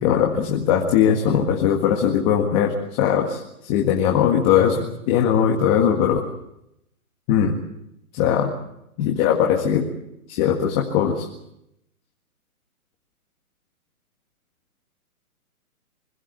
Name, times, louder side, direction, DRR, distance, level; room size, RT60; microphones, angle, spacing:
voice 1, 0.0-6.2 7.3-7.6 8.1-8.5 9.0-9.9 10.3-11.3, left 8 dB, 25° left, 1 dB, 1.8 m, -20 dB
25.5 x 16.5 x 8.0 m, 0.81 s
hypercardioid pair, 150°, 44 cm